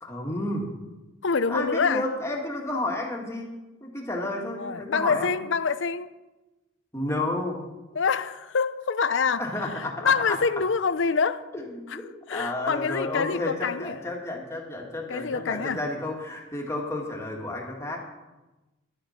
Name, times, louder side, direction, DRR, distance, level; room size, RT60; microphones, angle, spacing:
voice 1, 0.0-0.7 1.5-3.5 3.8-5.4 6.9-7.6 9.4-10.4 11.5-12.1 12.3-18.0, left 2 dB, 15° left, 2.0 m, -31 dB
voice 2, 1.2-2.0 4.6-6.1 7.9-9.4 9.7-11.4 11.9-12.0 12.3-14.1 15.1-15.8, left 5 dB, 65° left, 0.6 m, -26 dB
12.0 x 10.5 x 5.8 m
head